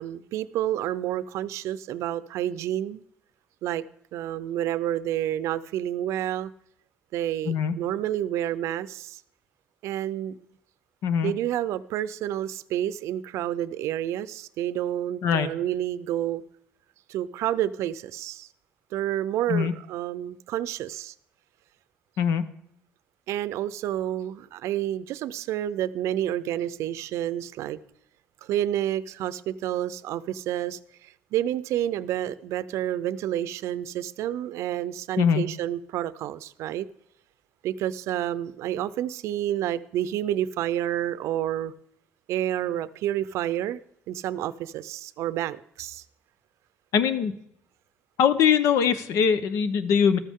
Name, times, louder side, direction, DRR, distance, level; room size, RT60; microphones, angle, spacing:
voice 1, 0.0-3.0 3.6-3.8 4.1-6.5 7.1-9.2 9.8-10.4 11.2-16.4 17.1-18.5 18.9-21.1 23.3-27.8 28.4-36.9 37.6-41.7 42.3-43.8 44.1-46.0, right 12 dB, 80° right, 0.5 m, -29 dB
voice 2, 7.5-7.8 11.0-11.3 15.2-15.5 19.5-19.7 22.2-22.4 35.2-35.4 46.9-47.3 48.2-50.2, left 7 dB, 90° left, 0.9 m, -22 dB
14.0 x 13.0 x 3.7 m
cardioid pair, 165°, 5 cm